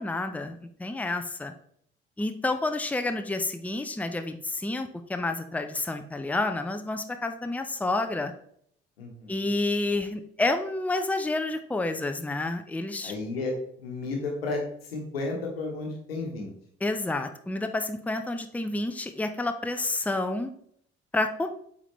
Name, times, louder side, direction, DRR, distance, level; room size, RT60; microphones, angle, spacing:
voice 1, 0.0-1.5 2.2-8.3 9.3-13.1 16.8-20.5 21.1-21.5, left 2 dB, 5° left, 7 dB, 0.7 m, -29 dB
voice 2, 9.0-9.3 13.0-14.6 14.9-16.5, left 3 dB, 80° left, 1 dB, 1.2 m, -32 dB
8.3 x 3.6 x 3.2 m, 0.65 s
figure-of-eight pair, 45°, 29 cm